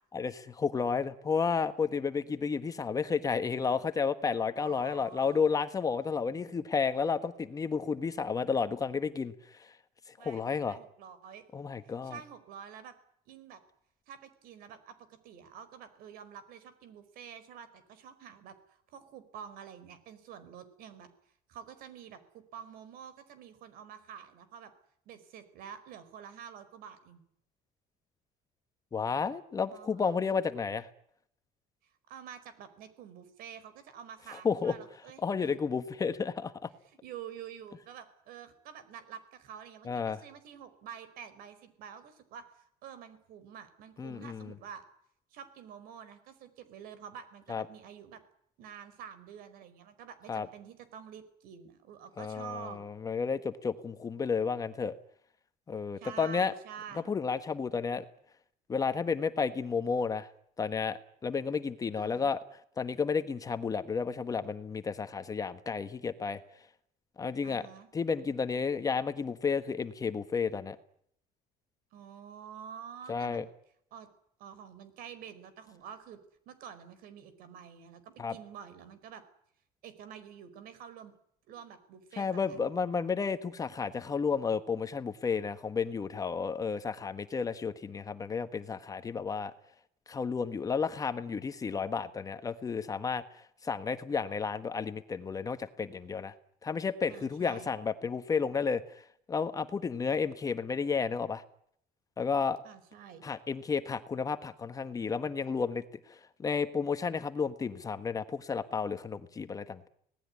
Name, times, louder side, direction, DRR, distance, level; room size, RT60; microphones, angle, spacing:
voice 1, 0.1-9.7 10.2-10.8 11.5-12.2 28.9-30.9 34.3-34.7 35.2-36.7 39.8-40.2 44.0-44.5 47.5-47.6 50.3-50.5 52.2-54.9 55.7-56.5 57.1-58.0 58.7-60.3 60.6-62.4 62.8-66.4 67.2-67.6 67.9-70.8 73.1-73.4 78.2-78.4 82.2-89.5 90.1-96.3 96.6-98.8 99.3-101.4 102.2-102.6 103.2-105.8 106.1-109.9, left 5 dB, 25° left, 10 dB, 1.3 m, -32 dB
voice 2, 4.6-5.4 10.2-11.4 11.8-12.9 13.3-13.6 14.1-21.1 21.5-24.7 25.0-27.2 29.7-30.1 32.1-35.6 36.8-44.8 45.3-48.2 48.6-52.8 56.0-57.1 61.9-62.3 67.4-67.9 71.9-73.5 73.9-74.1 74.4-76.2 76.4-79.2 79.8-81.1 81.5-82.7 97.1-97.7 102.6-103.2, right 8 dB, 75° right, 13 dB, 4.8 m, -48 dB
26.0 x 19.0 x 9.7 m, 0.69 s
cardioid pair, 160°, 15 cm